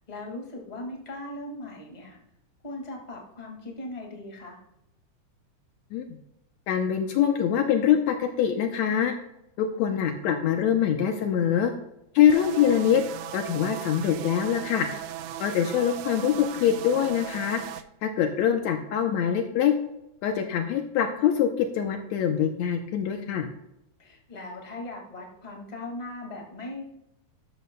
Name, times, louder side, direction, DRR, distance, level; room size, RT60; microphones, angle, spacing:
voice 1, 0.1-2.2 2.6-4.6 24.0-26.8, left 2 dB, 15° left, 0 dB, 1.6 m, -39 dB
voice 2, 6.7-9.1 9.6-11.7 12.2-13.0 13.3-14.9 15.4-17.6 18.0-19.7 20.2-23.5, left 9 dB, 75° left, 5 dB, 1.9 m, -24 dB
sound 1, 12.3-17.8, right 11 dB, 85° right, 1.4 m, -37 dB
12.5 x 11.5 x 2.3 m, 0.83 s
omnidirectional pair, 3.5 m